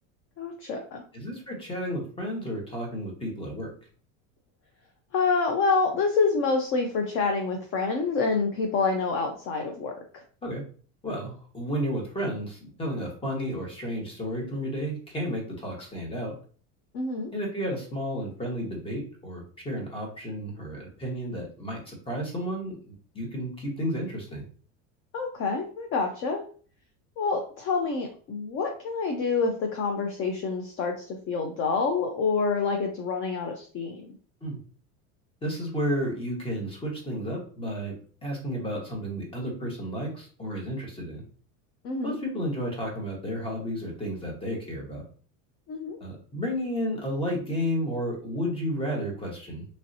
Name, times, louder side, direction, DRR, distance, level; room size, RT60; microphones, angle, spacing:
voice 1, 0.4-1.0 5.1-9.9 16.9-17.3 25.1-26.4 27.2-34.1 41.8-42.2 45.7-46.0, left 4 dB, 35° left, 3 dB, 0.4 m, -27 dB
voice 2, 1.1-3.7 10.4-10.6 11.0-16.3 17.3-22.8 23.1-24.4 34.4-34.6 35.4-37.9 38.2-41.2 42.0-45.0 46.0-49.7, equal, 15° left, -1 dB, 1.0 m, -32 dB
3.1 x 2.6 x 2.6 m, 0.42 s
supercardioid pair, 135°, 38 cm